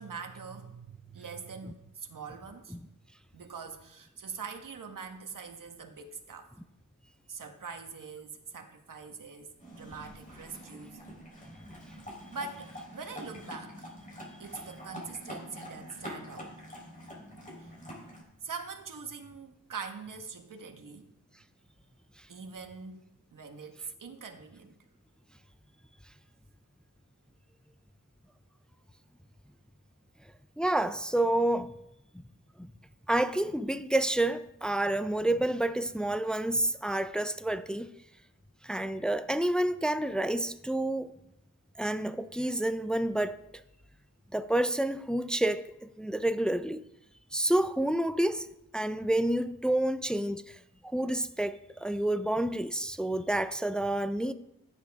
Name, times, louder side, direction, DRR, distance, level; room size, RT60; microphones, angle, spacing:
voice 1, 0.0-2.8 3.3-6.5 7.3-11.0 12.3-13.9 14.4-16.5 17.6-17.7 18.4-21.1 22.3-24.8, right 5 dB, 65° right, 1.4 m, -43 dB
sound 1, 9.6-18.2, equal, 25° left, 4.1 m, -45 dB
voice 2, 30.6-31.7 32.1-32.2 32.6-32.7 33.1-37.9 38.6-41.1 41.8-43.4 44.3-46.8 47.3-48.5 48.7-54.3, right 1 dB, ahead, 0.4 m, -29 dB
14.5 x 10.0 x 3.6 m
wide cardioid pair, 120°, 35 cm